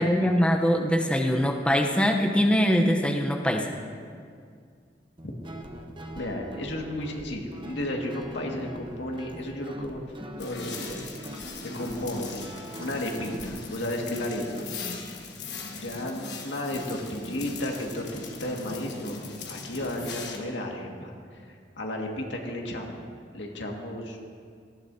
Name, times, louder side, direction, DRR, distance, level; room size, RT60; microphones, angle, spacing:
voice 1, 0.0-3.7, equal, 5° left, 1 dB, 0.7 m, -23 dB
Guitar, 5.2-13.5, right 1 dB, 30° right, 0.9 m, -43 dB
voice 2, 6.1-10.0 10.4-12.5 12.8-14.7 15.8-23.0 23.3-24.2, left 1 dB, 85° left, 0 dB, 1.9 m, -33 dB
sound 1, 10.4-20.4, left 3 dB, 65° left, 1.4 m, -39 dB
18.0 x 14.5 x 2.7 m, 2.2 s
head